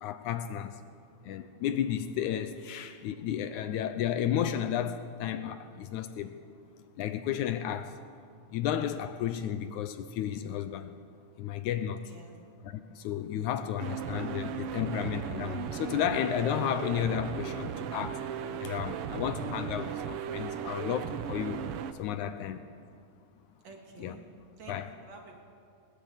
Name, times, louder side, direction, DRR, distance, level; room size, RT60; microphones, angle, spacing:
voice 1, 0.0-0.8 1.2-6.3 7.0-8.0 8.5-10.9 11.4-12.0 12.6-18.2 18.6-21.7 22.0-22.7 24.0-24.2 24.7-24.9, left 10 dB, 75° left, 2.0 m, -33 dB
voice 2, 12.0-12.4 13.4-13.7 23.6-24.3 24.6-25.4, right 4 dB, 55° right, 3.2 m, -50 dB
sound 1, 13.8-21.9, right 8 dB, 90° right, 1.2 m, -36 dB
20.0 x 19.0 x 8.0 m
omnidirectional pair, 3.7 m